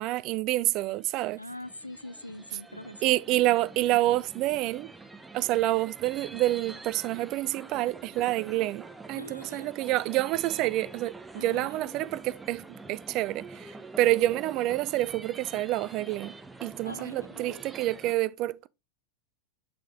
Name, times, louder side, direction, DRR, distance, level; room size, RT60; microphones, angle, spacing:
voice 1, 0.0-1.4 3.0-4.9 5.3-18.7, right 16 dB, 40° right, 0.4 m, -28 dB
sound 1, 0.9-18.1, right 3 dB, 10° right, 0.8 m, -46 dB
voice 2, 1.4-3.1 9.2-9.7 11.4-11.7 16.9-17.6, left 1 dB, 85° left, 0.4 m, -43 dB
6.6 x 5.2 x 3.5 m
figure-of-eight pair, 90°, 0 cm